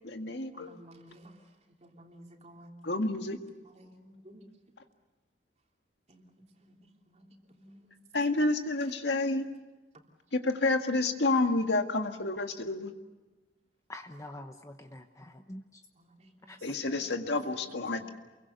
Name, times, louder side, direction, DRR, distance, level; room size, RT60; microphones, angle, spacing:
voice 1, 0.0-0.8 2.8-3.4 8.1-9.5 10.3-12.9 16.6-18.1, left 2 dB, 80° left, 1.9 m, -29 dB
voice 2, 0.5-1.3 1.8-2.7 3.6-4.5 6.1-6.2 6.6-8.0 16.0-16.6 17.0-17.1 18.0-18.1, equal, 40° right, 3.1 m, -55 dB
voice 3, 13.9-15.8 16.5-16.8, left 1 dB, 20° left, 0.9 m, -46 dB
28.5 x 23.0 x 6.8 m
head